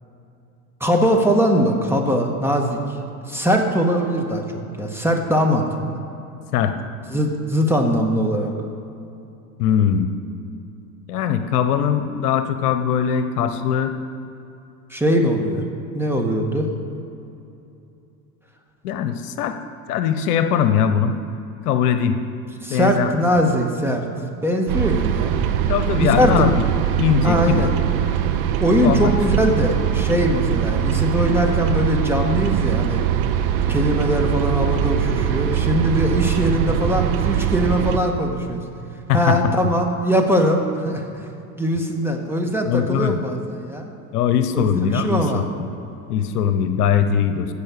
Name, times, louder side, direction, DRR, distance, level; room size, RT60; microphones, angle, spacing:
voice 1, 0.8-2.8 3.3-4.4 4.8-5.7 7.1-8.5 14.9-15.6 15.9-16.7 22.6-24.1 24.4-25.4 26.0-26.5 27.2-27.7 28.6-33.0 33.7-38.6 39.1-41.0 41.6-43.9 44.5-45.4, equal, 5° right, 2 dB, 1.9 m, -21 dB
voice 2, 9.6-10.1 11.1-13.9 18.8-19.5 19.9-21.1 21.6-22.2 22.7-23.1 25.7-26.6 27.0-27.7 28.8-29.1 39.1-39.4 42.6-43.1 44.1-45.6 46.1-47.5, left 8 dB, 70° left, 9 dB, 1.0 m, -20 dB
sound 1, 24.7-38.0, right 10 dB, 65° right, 1.1 m, -22 dB
15.0 x 5.6 x 8.2 m, 2.8 s
hypercardioid pair, 85°, 46 cm